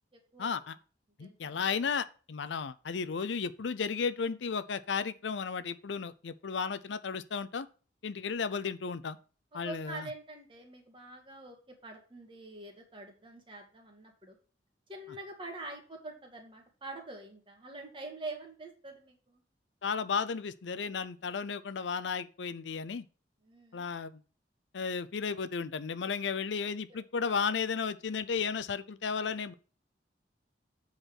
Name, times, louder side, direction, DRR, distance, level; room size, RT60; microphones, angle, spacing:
voice 1, 0.4-0.8 1.2-7.7 8.0-9.2 9.5-10.1 19.8-23.0 23.7-24.2 24.7-29.5, left 5 dB, 85° left, 0.5 m, -34 dB
voice 2, 1.2-1.6 9.5-11.6 11.8-14.4 14.9-19.4 23.4-23.9 26.9-27.0, right 2 dB, 30° right, 1.9 m, -45 dB
7.9 x 4.0 x 6.2 m
head